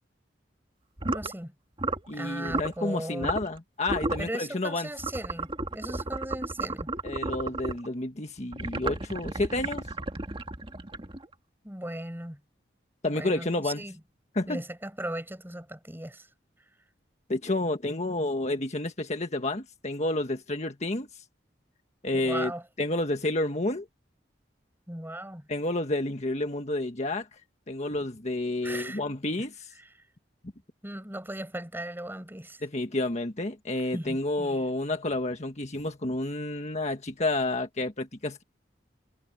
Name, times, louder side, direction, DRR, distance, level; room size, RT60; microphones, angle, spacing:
sound 1, 1.0-1.3 1.8-2.1 2.4-2.7 3.2-3.6 3.9-4.3 5.0-7.9 8.5-11.3, right 3 dB, 30° right, 2.0 m, -33 dB
voice 1, 1.1-1.5 2.1-3.3 4.2-6.9 11.6-12.4 13.0-14.0 14.5-16.3 22.1-22.6 24.9-25.5 28.6-29.0 29.8-30.0 30.8-32.6 33.9-34.6, right 1 dB, 10° right, 5.7 m, -37 dB
voice 2, 2.1-4.9 7.0-9.8 13.0-13.8 14.3-14.6 17.3-21.1 22.0-22.5 22.8-23.9 25.5-27.3 27.7-29.7 32.6-38.4, left 2 dB, 40° left, 1.6 m, -30 dB
head